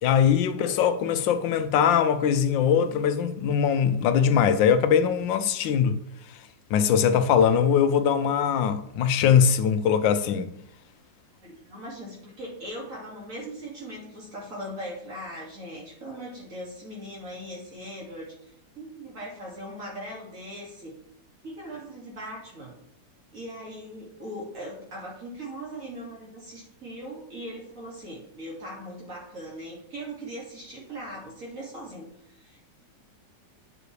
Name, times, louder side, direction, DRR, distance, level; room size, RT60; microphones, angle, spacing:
voice 1, 0.0-6.0 6.7-10.5, left 7 dB, 90° left, 1.4 m, -21 dB
voice 2, 11.4-21.0 21.4-22.7 23.3-32.1 32.4-32.6, equal, 45° right, 2.6 m, -39 dB
8.2 x 6.9 x 3.3 m
omnidirectional pair, 2.0 m